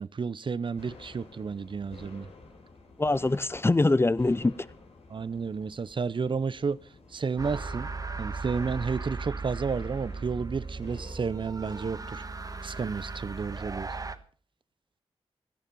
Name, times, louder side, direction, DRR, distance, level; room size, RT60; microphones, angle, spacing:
voice 1, 0.0-2.3 5.1-6.8 7.1-7.9 8.2-12.2 12.6-13.9, right 5 dB, 55° right, 0.7 m, -31 dB
sound 1, 0.7-14.2, left 3 dB, 85° left, 4.1 m, -51 dB
voice 2, 3.0-4.5, left 2 dB, 25° left, 0.6 m, -23 dB
sound 2, 7.4-14.2, right 4 dB, 35° right, 1.4 m, -37 dB
17.5 x 12.0 x 5.4 m
cardioid pair, 65°, 10 cm